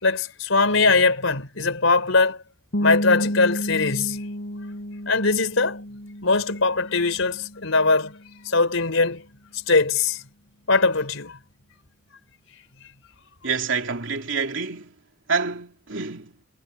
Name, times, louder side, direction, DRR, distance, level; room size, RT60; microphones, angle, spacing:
voice 1, 0.0-2.4 2.8-4.2 5.1-5.8 6.2-8.1 8.5-9.2 9.7-10.2 10.7-11.4, left 3 dB, 85° left, 3.7 m, -21 dB
sound 1, 2.7-8.3, equal, 60° left, 5.3 m, -31 dB
voice 2, 13.4-15.0 15.3-16.4, right 5 dB, 70° right, 3.2 m, -27 dB
head